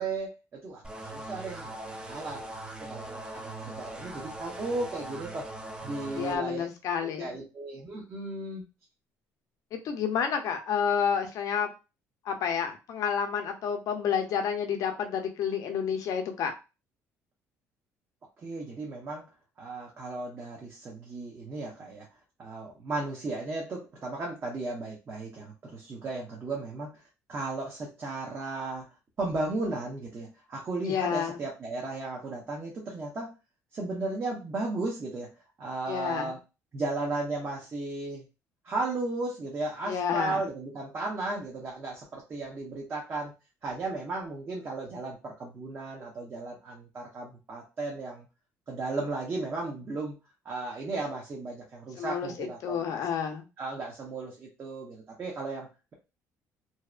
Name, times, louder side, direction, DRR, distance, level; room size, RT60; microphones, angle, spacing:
voice 1, 0.0-2.6 2.9-5.4 5.8-6.6 7.2-8.6 18.4-19.2 19.6-22.1 22.4-26.9 27.3-28.9 29.2-33.3 33.7-35.3 35.6-36.4 36.7-38.2 38.6-43.3 43.6-48.3 48.7-50.2 50.4-53.0 53.6-55.9, right 3 dB, 40° right, -2 dB, 0.7 m, -35 dB
sound 1, 0.8-6.4, right 2 dB, 15° right, 0.4 m, -41 dB
voice 2, 6.1-7.4 9.7-11.7 12.2-16.5 30.8-31.4 35.9-36.3 39.9-40.5 52.0-53.5, left 7 dB, 65° left, 5 dB, 0.6 m, -30 dB
2.7 x 2.0 x 2.4 m, 0.29 s
cardioid pair, 100°, 6 cm